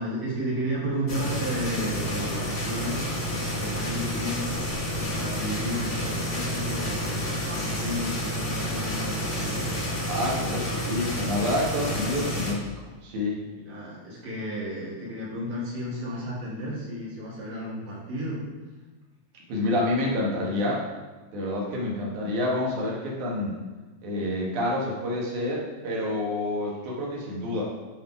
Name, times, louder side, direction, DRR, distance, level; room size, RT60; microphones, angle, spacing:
voice 1, 0.0-3.1 3.5-4.6 4.9-9.8 13.5-18.4, equal, 60° right, -7 dB, 3.1 m, -33 dB
sound 1, 1.1-12.5, equal, 65° left, 0.7 m, -30 dB
voice 2, 10.1-12.6 13.0-13.4 19.5-20.9 21.3-23.5 24.0-27.6, left 1 dB, 80° right, -3 dB, 2.9 m, -28 dB
8.3 x 3.9 x 4.8 m, 1.2 s
omnidirectional pair, 3.5 m